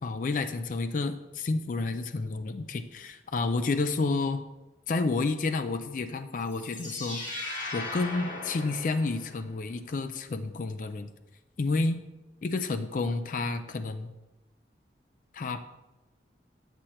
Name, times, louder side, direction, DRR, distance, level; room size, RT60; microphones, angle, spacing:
voice 1, 0.0-4.4 4.9-7.2 7.7-11.1 11.6-12.0 12.4-14.1 15.3-15.7, left 3 dB, 45° left, 9 dB, 0.4 m, -30 dB
sound 1, 6.4-9.5, left 2 dB, 90° left, 2.6 m, -38 dB
8.1 x 7.5 x 2.9 m, 1.0 s
head